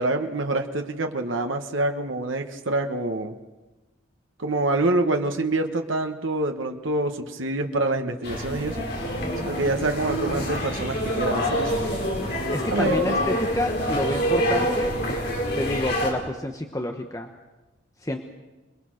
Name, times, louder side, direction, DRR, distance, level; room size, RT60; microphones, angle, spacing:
voice 1, 0.0-3.3 4.4-8.8 9.4-11.7 12.7-13.2, right 2 dB, 90° right, 5 dB, 1.5 m, -26 dB
sound 1, 8.2-16.1, equal, 55° left, 5.0 m, -26 dB
voice 2, 12.5-15.0 15.5-17.3 18.0-18.2, left 1 dB, 15° left, 4 dB, 1.1 m, -28 dB
27.0 x 21.0 x 6.5 m, 1.1 s
head